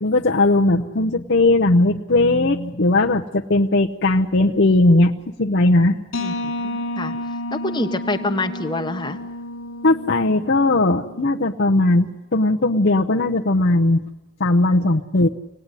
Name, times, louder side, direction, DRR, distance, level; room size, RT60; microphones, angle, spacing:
voice 1, 0.0-6.0 9.8-14.0 14.4-15.3, left 2 dB, 60° left, 0 dB, 0.9 m, -18 dB
sound 1, 6.1-11.7, left 1 dB, 75° left, 1.8 m, -31 dB
voice 2, 6.2-7.2 7.5-9.2, left 2 dB, 25° left, 4 dB, 1.0 m, -26 dB
25.5 x 18.5 x 9.9 m, 1.0 s
head